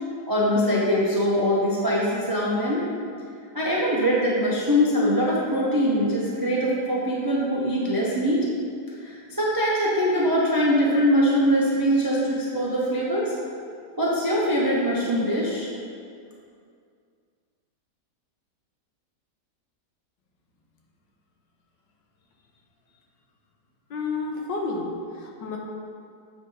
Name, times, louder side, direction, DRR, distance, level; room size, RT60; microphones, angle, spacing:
voice 1, 0.3-2.8 3.5-8.5 9.0-13.3 14.0-15.7, equal, 35° right, -5 dB, 0.3 m, -22 dB
voice 2, 23.9-25.6, left 3 dB, 80° left, 0 dB, 1.6 m, -30 dB
7.9 x 3.5 x 5.5 m, 2.3 s
omnidirectional pair, 1.9 m